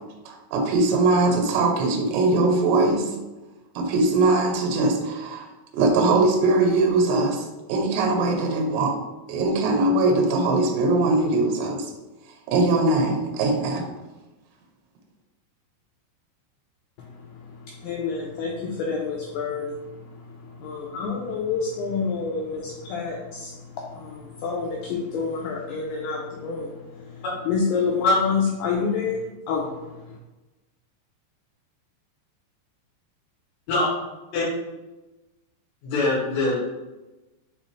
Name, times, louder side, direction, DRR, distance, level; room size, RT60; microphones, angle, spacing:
voice 1, 0.3-3.2 3.8-5.5 5.7-8.9 9.3-11.9 12.5-13.9, right 2 dB, 80° right, 2.8 m, -21 dB
voice 2, 17.8-19.8 20.6-23.6 23.9-26.7 27.1-29.2 29.5-29.7, left 5 dB, 90° left, 2.2 m, -28 dB
voice 3, 35.8-36.6, left 2 dB, 75° left, 3.2 m, -22 dB
6.7 x 2.5 x 3.0 m
omnidirectional pair, 5.2 m